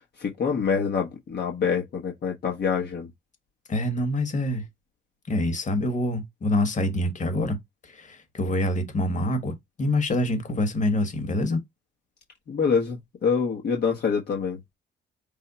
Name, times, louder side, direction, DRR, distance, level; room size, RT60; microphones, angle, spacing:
voice 1, 0.2-3.1 12.5-14.6, left 6 dB, 55° left, 1.1 m, -26 dB
voice 2, 3.7-4.6 5.3-7.6 7.8-11.6, left 1 dB, 40° left, 1.6 m, -26 dB
5.4 x 2.2 x 4.1 m
cardioid pair, 90°, 20 cm